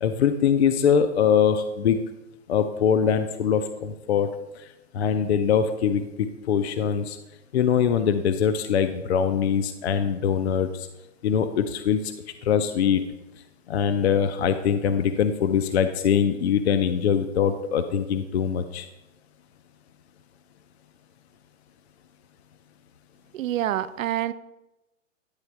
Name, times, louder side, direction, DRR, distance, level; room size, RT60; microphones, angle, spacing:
voice 1, 0.0-2.0 2.5-4.7 4.9-7.2 7.5-10.9 11.2-12.1 12.4-13.0 13.7-18.9, left 7 dB, 55° left, 9 dB, 0.4 m, -23 dB
voice 2, 23.3-24.3, right 12 dB, 80° right, 15 dB, 0.5 m, -26 dB
9.8 x 3.4 x 4.5 m, 0.98 s
hypercardioid pair, 165°, 39 cm